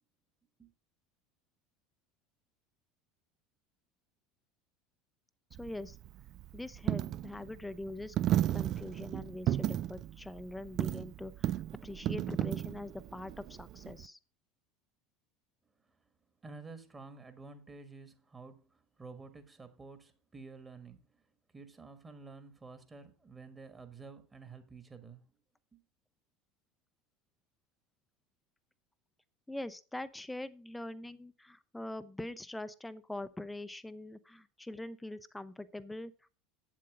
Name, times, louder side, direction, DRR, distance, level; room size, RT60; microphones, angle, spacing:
Coin (dropping), 5.5-14.1, right 12 dB, 45° right, 0.4 m, -35 dB
voice 1, 5.6-6.0 6.5-8.2 8.5-14.2 29.5-36.1, left 1 dB, 5° left, 0.6 m, -43 dB
voice 2, 16.4-21.2 21.5-25.2 25.7-25.8, right 4 dB, 20° right, 1.5 m, -51 dB
8.5 x 7.6 x 5.0 m
figure-of-eight pair, 75°, 0 cm